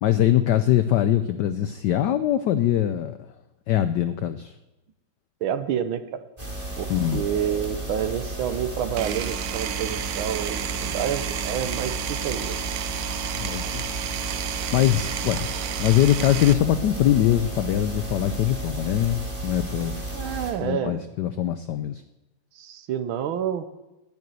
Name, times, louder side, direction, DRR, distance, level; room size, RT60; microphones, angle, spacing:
voice 1, 0.0-3.2 3.7-4.5 6.9-7.2 13.4-14.0 14.7-15.5 15.8-20.0 20.6-22.0, left 12 dB, 80° left, 11 dB, 0.9 m, -22 dB
voice 2, 5.4-6.2 6.8-12.6 20.1-21.0 22.6-23.6, right 9 dB, 70° right, 11 dB, 1.5 m, -29 dB
sound 1, 6.4-20.5, right 2 dB, 15° right, 2.8 m, -33 dB
Power tool, 9.0-16.5, right 10 dB, 85° right, 0.8 m, -32 dB
10.5 x 9.5 x 9.3 m, 1.0 s
omnidirectional pair, 2.4 m